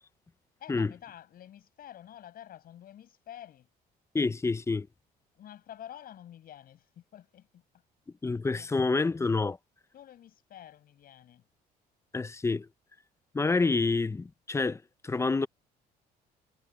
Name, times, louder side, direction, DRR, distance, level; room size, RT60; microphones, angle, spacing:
voice 1, 0.6-3.7 5.3-7.6 8.5-8.7 9.9-11.5, left 11 dB, 60° left, 7.6 m, -49 dB
voice 2, 4.1-4.9 8.2-9.6 12.1-12.7 13.3-15.5, left 3 dB, 15° left, 0.7 m, -28 dB
cardioid pair, 110°, 17 cm